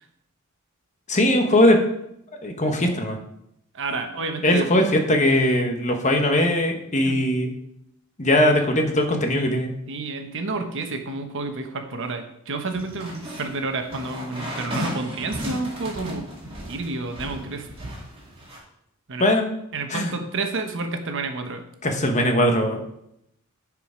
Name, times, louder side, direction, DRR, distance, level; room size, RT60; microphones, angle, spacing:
voice 1, 1.1-1.8 2.4-3.2 4.4-7.5 8.2-9.7 19.2-19.5 19.9-20.1 21.8-22.8, left 1 dB, 35° left, 4 dB, 1.2 m, -20 dB
voice 2, 3.7-4.7 7.0-7.2 9.9-16.3 16.7-17.7 19.1-19.2 19.7-21.6, right 3 dB, 60° right, 6 dB, 1.0 m, -30 dB
sound 1, 12.7-18.6, equal, 25° right, 2.5 m, -35 dB
10.0 x 4.9 x 5.0 m, 0.78 s
head